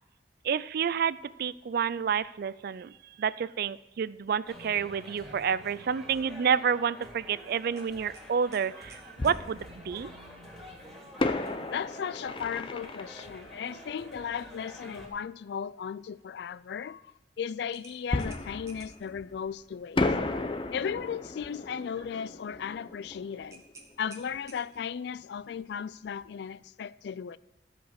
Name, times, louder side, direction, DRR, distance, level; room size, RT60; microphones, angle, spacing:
voice 1, 0.4-10.1, right 7 dB, 60° right, 0.4 m, -29 dB
sound 1, 4.4-15.1, equal, ahead, 2.9 m, -48 dB
sound 2, 7.8-9.4 12.0-12.3 12.7-12.8 17.7-19.1 23.5-24.9, right 2 dB, 20° right, 1.6 m, -53 dB
Fireworks, 7.9-8.0 9.2-10.3 11.2-14.7 18.1-19.5 20.0-24.5 24.8-24.9 25.4-25.6, left 2 dB, 30° left, 0.6 m, -34 dB
voice 2, 11.7-17.1 17.4-20.1 20.7-23.6 24.0-27.4, left 7 dB, 70° left, 0.3 m, -36 dB
14.0 x 5.1 x 6.4 m
head